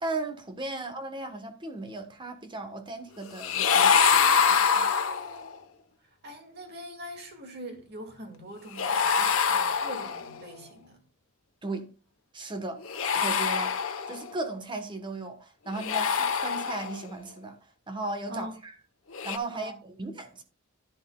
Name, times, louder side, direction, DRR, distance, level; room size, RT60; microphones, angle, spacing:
voice 1, 0.0-4.9 11.6-11.9 12.3-12.8 13.1-13.8 14.1-17.5 17.9-18.7 19.2-20.4, right 2 dB, 25° right, 1.1 m, -36 dB
sound 1, 3.4-5.5 8.8-10.4 12.8-14.4 15.7-17.1 19.1-19.4, left 6 dB, 85° left, 1.0 m, -25 dB
voice 2, 6.2-11.0 18.3-18.6 19.5-19.8, equal, 55° right, 2.2 m, -42 dB
10.5 x 10.5 x 2.3 m
head